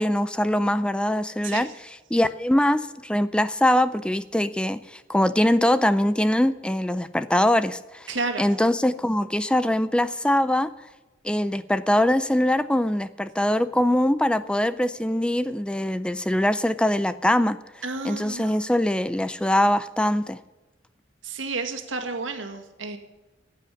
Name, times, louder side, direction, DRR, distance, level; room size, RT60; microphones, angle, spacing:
voice 1, 0.0-1.7 2.1-8.1 8.4-10.7 11.2-17.6 18.0-20.4, left 1 dB, 5° left, 13 dB, 0.4 m, -22 dB
voice 2, 8.1-8.5 17.8-18.6 21.2-23.0, right 3 dB, 90° right, 5 dB, 2.0 m, -31 dB
15.0 x 8.6 x 7.0 m, 1.1 s
head